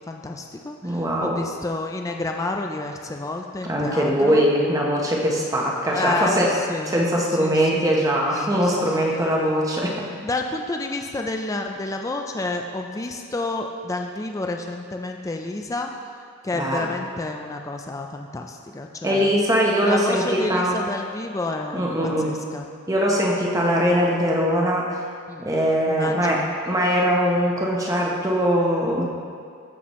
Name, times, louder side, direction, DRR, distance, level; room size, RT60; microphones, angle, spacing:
voice 1, 0.1-4.5 5.9-7.0 7.4-7.9 8.3-9.0 10.2-15.9 16.4-19.3 19.8-21.9 22.2-22.6 25.3-25.5 25.9-26.5, left 2 dB, 15° left, 3 dB, 0.3 m, -30 dB
voice 2, 0.8-1.4 3.6-6.5 6.8-10.0 16.5-16.9 19.0-20.8 21.7-22.3 22.9-25.1 25.4-29.1, equal, 15° right, -2 dB, 0.8 m, -21 dB
14.5 x 5.9 x 3.1 m, 2.2 s
head